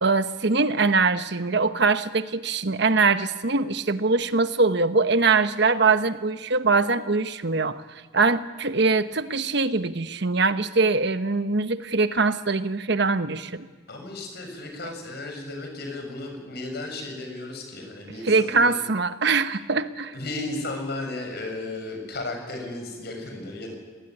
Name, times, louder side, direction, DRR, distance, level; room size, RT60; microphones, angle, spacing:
voice 1, 0.0-7.8 8.1-13.7 14.8-14.9 18.2-20.1, right 4 dB, 60° right, 11 dB, 1.1 m, -22 dB
voice 2, 13.9-18.8 20.1-23.8, left 2 dB, 55° left, 4 dB, 7.2 m, -34 dB
27.0 x 19.0 x 9.9 m, 1.4 s
head